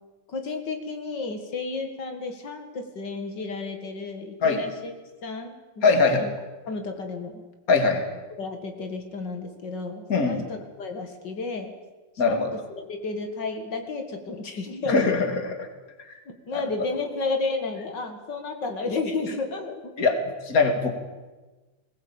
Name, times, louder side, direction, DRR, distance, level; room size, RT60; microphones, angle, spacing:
voice 1, 0.3-4.9 5.2-6.3 6.7-7.4 8.4-11.7 12.2-12.4 12.9-15.2 16.3-19.9, left 3 dB, 85° left, 5 dB, 2.7 m, -32 dB
voice 2, 5.8-6.2 7.7-8.1 10.1-10.4 12.2-12.5 14.9-15.3 15.6-15.7 16.5-16.6 20.0-20.2 20.4-20.9, left 4 dB, 55° left, 5 dB, 2.7 m, -21 dB
21.5 x 18.0 x 8.9 m, 1.2 s
omnidirectional pair, 1.9 m